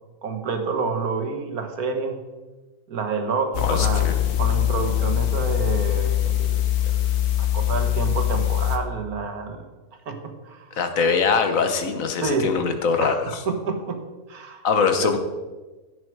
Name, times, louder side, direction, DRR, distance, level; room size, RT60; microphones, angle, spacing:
voice 1, 0.2-2.2 2.9-4.1 4.4-7.0 7.4-9.7 10.1-10.7 12.2-12.5 13.0-13.2 13.5-14.0 14.3-14.7 15.0-15.1, right 4 dB, 75° right, 5 dB, 1.8 m, -28 dB
sound 1, 3.5-8.8, left 12 dB, 90° left, 1.6 m, -22 dB
voice 2, 3.6-4.1 10.8-13.4 14.6-15.2, left 5 dB, 65° left, 7 dB, 1.5 m, -22 dB
16.0 x 6.7 x 4.7 m, 1.2 s
omnidirectional pair, 1.6 m